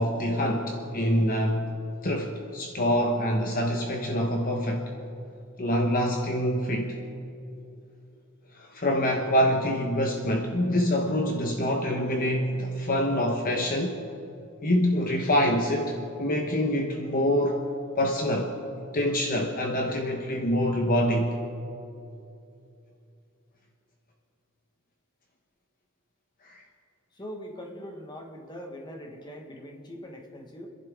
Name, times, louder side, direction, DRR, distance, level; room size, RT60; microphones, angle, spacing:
voice 1, 0.0-1.6 2.0-4.9 5.6-7.0 8.5-14.0 14.6-17.6 18.0-18.5 18.9-21.3 26.4-26.6, equal, 40° left, 2 dB, 1.1 m, -25 dB
voice 2, 27.1-30.7, equal, 20° left, 1 dB, 1.6 m, -41 dB
29.5 x 11.0 x 3.7 m, 2.7 s
head